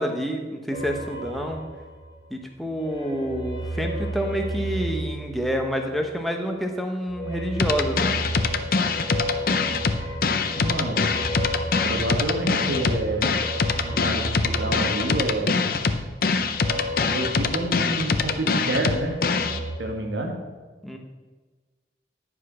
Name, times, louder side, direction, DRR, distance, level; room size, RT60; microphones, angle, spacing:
voice 1, 0.0-1.6 2.3-8.1 20.8-21.0, equal, ahead, 2 dB, 0.9 m, -28 dB
sound 1, 0.7-2.3 2.7-6.2 7.0-18.4 18.7-19.8, right 1 dB, 25° left, 2.0 m, -33 dB
sound 2, 7.6-19.6, left 4 dB, 50° left, 0.5 m, -24 dB
voice 2, 10.5-11.0 11.8-13.3 13.8-15.8 17.1-19.2 19.8-20.3, right 1 dB, 75° right, 2 dB, 1.7 m, -28 dB
10.5 x 4.8 x 6.1 m, 1.3 s
head